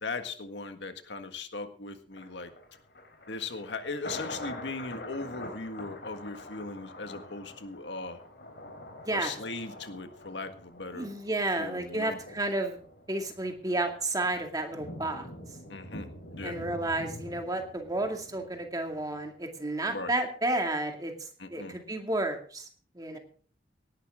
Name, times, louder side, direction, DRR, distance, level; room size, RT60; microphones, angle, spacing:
voice 1, 0.0-2.5 3.3-8.2 9.1-11.1 11.6-12.2 15.7-16.6 19.8-20.1 21.4-21.8 23.1-23.2, left 3 dB, 85° left, 7 dB, 1.7 m, -38 dB
Thunder, 2.1-19.2 19.6-19.7, left 1 dB, 65° left, 3.9 m, -46 dB
voice 2, 9.0-9.3 10.9-12.8 13.1-15.3 16.4-21.1 21.5-22.7 22.9-23.2, right 2 dB, 20° right, 4 dB, 2.3 m, -31 dB
18.5 x 11.5 x 3.7 m, 0.44 s
head